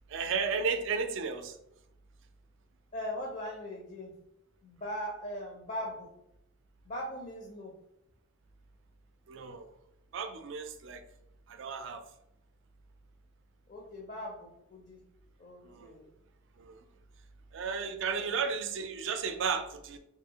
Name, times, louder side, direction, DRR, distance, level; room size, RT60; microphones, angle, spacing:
voice 1, 0.1-1.6 9.3-9.7 10.1-11.0 11.5-12.0 15.6-15.9 16.6-16.8 17.5-20.0, right 5 dB, 65° right, 7 dB, 0.4 m, -34 dB
voice 2, 2.9-4.1 4.6-6.1 6.8-7.7 13.7-15.0 15.4-16.1 18.1-18.3, equal, 35° left, -1 dB, 0.5 m, -40 dB
2.7 x 2.7 x 2.8 m, 0.82 s
head